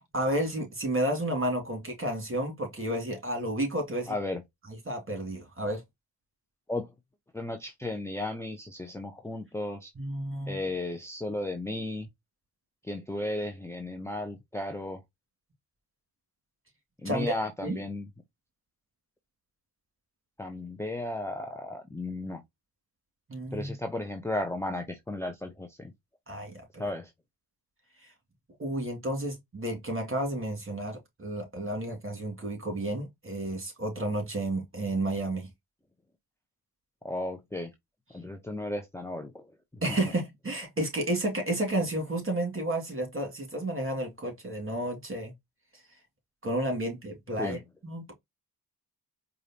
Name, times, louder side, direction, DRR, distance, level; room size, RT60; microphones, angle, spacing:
voice 1, 0.1-4.2 4.9-5.8 10.0-10.6 17.0-17.3 17.6-17.8 23.3-23.7 26.3-26.8 28.0-28.1 28.6-35.5 39.8-45.3 46.4-47.6 47.8-48.1, right 1 dB, 30° right, 2.4 m, -31 dB
voice 2, 4.1-4.4 6.7-6.9 7.3-9.9 10.5-12.1 12.8-15.0 17.0-18.1 20.4-22.4 23.5-25.9 26.8-27.1 37.0-37.7 38.1-39.5 39.7-39.8 47.4-47.6, left 1 dB, 5° left, 0.8 m, -34 dB
4.8 x 2.6 x 2.9 m
supercardioid pair, 45°, 40 cm